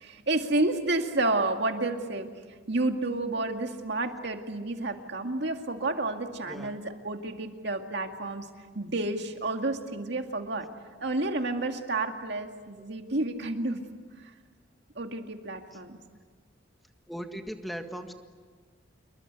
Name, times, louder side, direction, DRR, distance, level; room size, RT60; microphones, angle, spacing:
voice 1, 0.0-2.3 2.7-8.5 8.7-10.7 11.0-13.8 15.0-16.0, right 2 dB, 60° right, 5 dB, 2.2 m, -30 dB
voice 2, 17.1-18.2, equal, ahead, 5 dB, 1.7 m, -38 dB
28.0 x 23.0 x 8.3 m, 1.5 s
head